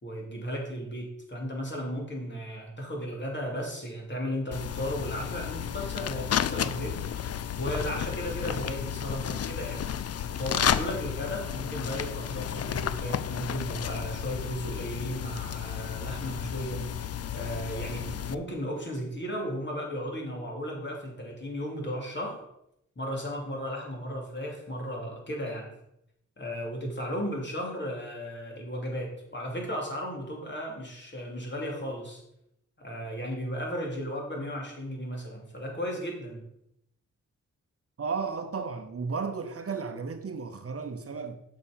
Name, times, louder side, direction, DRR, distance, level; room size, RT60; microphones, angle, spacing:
voice 1, 0.0-9.8 10.4-16.9 17.3-22.4 23.0-25.7 26.4-32.2 32.8-36.4, equal, 35° left, 3.0 m, -35 dB
sound 1, 4.5-18.3, left 9 dB, 50° left, 0.5 m, -32 dB
voice 2, 38.0-41.4, right 5 dB, 50° right, 0.8 m, -34 dB
6.8 x 6.0 x 5.3 m
cardioid pair, 60°, 31 cm